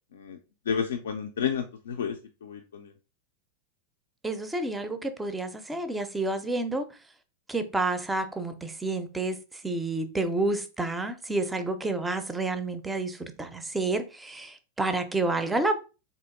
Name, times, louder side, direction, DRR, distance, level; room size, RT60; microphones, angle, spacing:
voice 1, 0.7-2.9, left 7 dB, 65° left, 0.3 m, -31 dB
voice 2, 4.2-6.9 7.5-9.4 9.6-15.8, right 2 dB, 10° right, 0.4 m, -29 dB
3.8 x 2.8 x 2.4 m
figure-of-eight pair, 90°, 0 cm